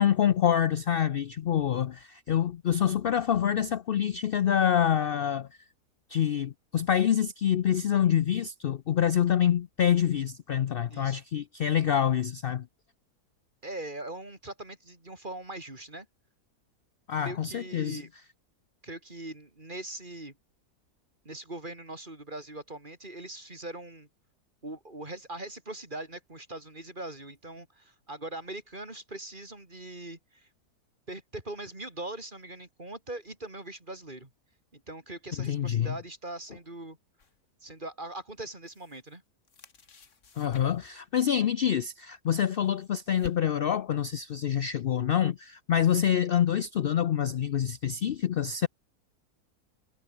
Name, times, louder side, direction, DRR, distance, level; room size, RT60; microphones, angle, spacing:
voice 1, 0.0-5.5 6.1-12.7 17.1-18.0 35.4-36.0 40.4-48.7, left 9 dB, 70° left, 0.5 m, -26 dB
voice 2, 10.9-11.2 13.6-16.1 17.2-18.1 18.8-20.3 21.2-24.1 24.6-30.5 31.1-34.3 34.7-37.0 37.6-39.2, right 2 dB, 30° right, 4.2 m, -41 dB
sound 1, 37.2-37.4 38.4-39.2 39.4-41.0 42.2-43.8, left 5 dB, 50° left, 2.0 m, -50 dB
omnidirectional pair, 1.6 m